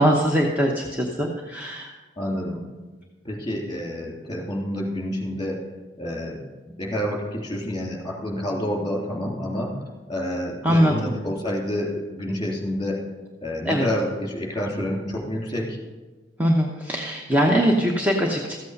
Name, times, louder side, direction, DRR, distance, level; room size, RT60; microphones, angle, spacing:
voice 1, 0.0-1.9 10.6-11.1 13.6-13.9 16.4-18.6, equal, 10° right, -1 dB, 0.9 m, -21 dB
voice 2, 2.2-2.6 3.2-5.6 6.0-6.4 6.7-9.7 10.1-13.0 13.4-15.8, equal, 25° left, -2 dB, 3.3 m, -28 dB
14.0 x 8.3 x 5.3 m, 1.2 s
head